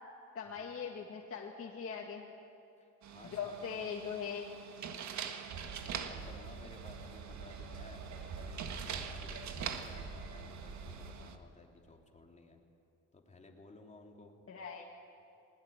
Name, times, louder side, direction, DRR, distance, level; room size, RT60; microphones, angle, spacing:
voice 1, 0.3-2.2 3.2-4.5 14.5-14.9, left 7 dB, 50° left, -1 dB, 2.2 m, -41 dB
voice 2, 2.8-3.6 5.8-12.6 13.1-14.4, left 2 dB, 25° left, 1 dB, 3.4 m, -56 dB
sound 1, 3.0-11.4, right 7 dB, 70° right, 1.7 m, -45 dB
sound 2, 5.5-11.1, right 4 dB, 90° right, 4.0 m, -46 dB
20.0 x 19.5 x 9.0 m, 2.8 s
cardioid pair, 90°, 30 cm